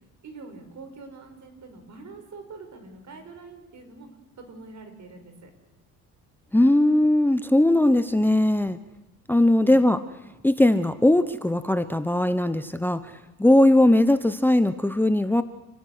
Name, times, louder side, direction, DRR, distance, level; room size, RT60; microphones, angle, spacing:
voice 1, 0.2-4.1 4.4-5.5 9.6-10.0, right 3 dB, 55° right, 6 dB, 5.8 m, -44 dB
voice 2, 6.5-8.8 9.3-10.0 10.4-15.4, left 1 dB, 5° left, 12 dB, 1.0 m, -19 dB
29.0 x 13.0 x 9.5 m, 1.1 s
supercardioid pair, 75°, 34 cm